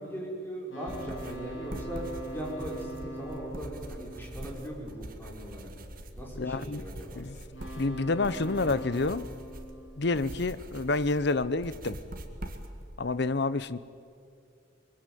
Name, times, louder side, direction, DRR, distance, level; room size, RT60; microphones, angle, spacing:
voice 1, 0.0-2.0 2.3-5.7 6.1-7.2, equal, 10° left, -3 dB, 6.1 m, -39 dB
sound 1, 0.7-5.1 7.4-10.7, right 2 dB, 80° left, 6.5 m, -43 dB
sound 2, 0.9-12.9, right 1 dB, 45° right, 2.1 m, -43 dB
voice 2, 6.4-6.8 7.2-7.4 7.8-9.2 10.0-12.0 13.0-13.8, left 3 dB, 60° left, 16 dB, 0.8 m, -28 dB
25.0 x 22.5 x 9.2 m, 2.5 s
head